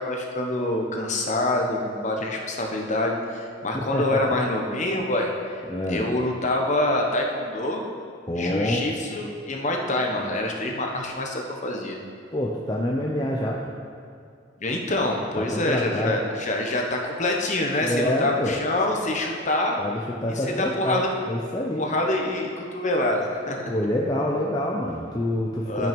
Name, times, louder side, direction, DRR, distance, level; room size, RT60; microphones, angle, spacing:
voice 1, 0.0-5.3 5.9-7.8 8.4-12.0 14.6-19.8 20.3-21.2 21.7-23.6 25.6-25.9, left 1 dB, 40° left, 1 dB, 1.1 m, -26 dB
voice 2, 3.7-4.4 5.7-6.1 8.3-8.8 12.3-13.6 15.4-16.2 17.8-18.6 19.8-21.8 23.7-25.9, left 1 dB, 20° left, -2 dB, 0.6 m, -27 dB
12.0 x 6.1 x 5.3 m, 2.3 s
head